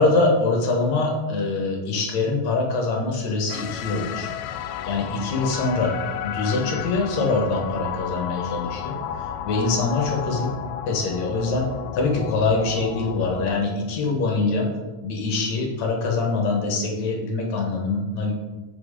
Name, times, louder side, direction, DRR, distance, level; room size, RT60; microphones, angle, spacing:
voice 1, 0.0-4.3 4.8-5.9 6.2-10.5 10.9-11.7 11.9-14.7 15.0-18.3, left 3 dB, 65° left, 1 dB, 2.3 m, -24 dB
sound 1, 3.5-13.6, left 9 dB, 90° left, 2.2 m, -33 dB
7.9 x 4.9 x 4.9 m, 1.2 s
omnidirectional pair, 3.8 m